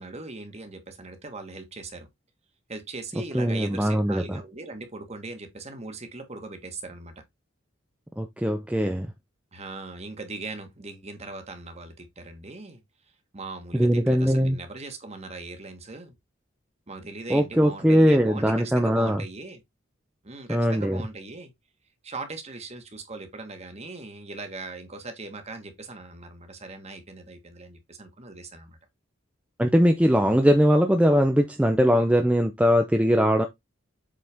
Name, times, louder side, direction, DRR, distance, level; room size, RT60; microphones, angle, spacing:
voice 1, 0.0-2.1 2.7-7.1 9.5-12.8 13.3-16.2 16.9-19.6 20.2-21.5 22.0-28.8, right 3 dB, 35° right, 1.5 m, -39 dB
voice 2, 3.3-4.4 8.2-9.1 13.7-14.6 17.3-19.2 20.5-21.0 29.6-33.5, equal, 5° right, 0.6 m, -21 dB
7.6 x 4.2 x 3.5 m
head